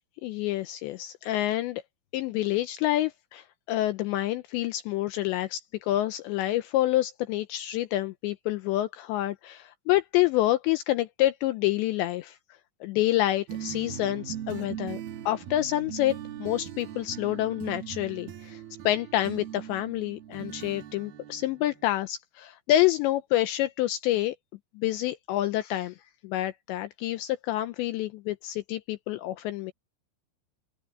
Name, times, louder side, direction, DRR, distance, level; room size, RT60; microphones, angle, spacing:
voice 1, 0.2-1.8 2.1-12.4 12.8-15.0 15.3-24.3 24.8-25.9 26.2-29.7, left 14 dB, 85° left, 2.6 m, -28 dB
sound 1, 13.5-21.9, right 10 dB, 65° right, 2.5 m, -40 dB
open air
omnidirectional pair, 5.8 m